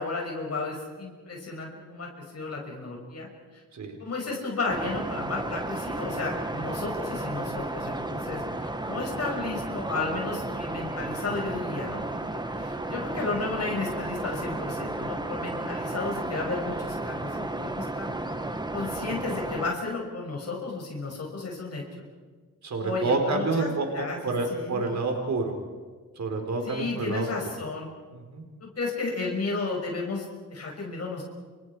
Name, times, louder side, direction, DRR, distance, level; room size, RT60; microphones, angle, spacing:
voice 1, 0.0-3.3 4.0-18.1 18.7-21.8 22.8-25.0 26.6-27.9 28.6-31.2, left 3 dB, 50° left, 0 dB, 5.9 m, -33 dB
sound 1, 4.7-19.7, right 2 dB, 15° right, 1.6 m, -33 dB
voice 2, 22.6-25.5 26.2-27.3 28.1-28.4, right 3 dB, 55° right, 4 dB, 4.2 m, -28 dB
29.5 x 27.0 x 4.8 m, 1.5 s
cardioid pair, 110°, 33 cm